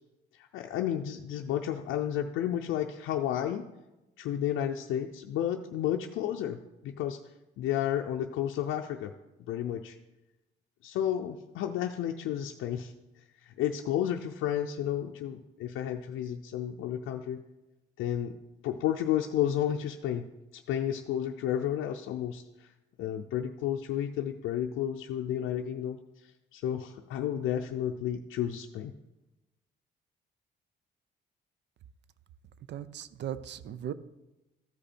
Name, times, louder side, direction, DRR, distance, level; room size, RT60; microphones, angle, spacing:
voice 1, 0.3-3.7 4.2-7.2 7.6-9.1 9.5-10.0 10.8-12.9 13.4-17.4 18.0-18.3 18.6-20.3 20.5-22.7 23.0-28.9, left 10 dB, 85° left, 3 dB, 0.5 m, -32 dB
voice 2, 32.7-33.9, right 10 dB, 60° right, 15 dB, 0.5 m, -38 dB
13.5 x 5.4 x 4.3 m, 1.0 s
cardioid pair, 90°, 20 cm